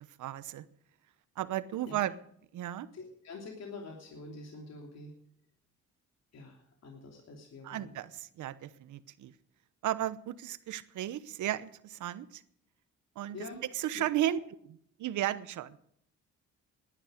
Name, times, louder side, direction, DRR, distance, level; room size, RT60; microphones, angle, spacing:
voice 1, 0.2-0.6 1.4-2.1 2.5-2.9 7.6-9.3 9.8-12.4 13.2-13.4 13.7-14.4 14.7-15.8, right 12 dB, 75° right, 15 dB, 1.0 m, -34 dB
voice 2, 2.9-5.1 6.3-7.9 13.3-13.6 13.9-14.0, left 3 dB, 60° left, 0 dB, 3.2 m, -46 dB
18.5 x 11.5 x 5.1 m, 0.69 s
cardioid pair, 90°, 30 cm